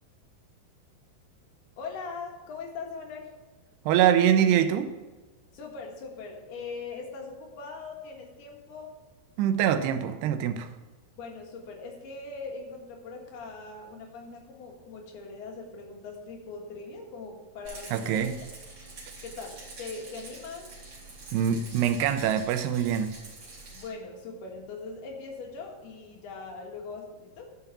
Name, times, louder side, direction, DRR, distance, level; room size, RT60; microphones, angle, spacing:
voice 1, 1.8-3.3 5.5-8.9 11.2-18.3 19.2-20.7 23.7-27.5, left 4 dB, 75° left, 1 dB, 3.6 m, -41 dB
voice 2, 3.9-4.9 9.4-10.7 17.9-18.3 21.3-23.1, right 9 dB, 85° right, 9 dB, 2.8 m, -24 dB
Rattle, 17.6-23.9, right 3 dB, 35° right, 2.8 m, -46 dB
11.0 x 5.8 x 6.9 m, 1.2 s
omnidirectional pair, 4.7 m